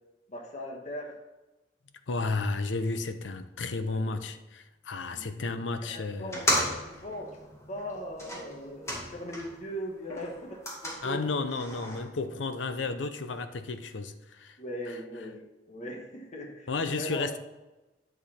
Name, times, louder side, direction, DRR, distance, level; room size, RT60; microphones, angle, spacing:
voice 1, 0.3-1.2 3.9-4.0 5.1-5.2 5.8-7.3 7.7-11.2 14.6-17.4, equal, 40° left, 1.4 m, -39 dB
voice 2, 2.1-6.5 11.0-14.6 14.9-15.0 16.7-17.4, left 3 dB, 85° left, 0.7 m, -32 dB
sound 1, 6.2-9.7 10.0-12.0, left 1 dB, 15° left, 2.1 m, -34 dB
10.5 x 6.9 x 4.3 m
head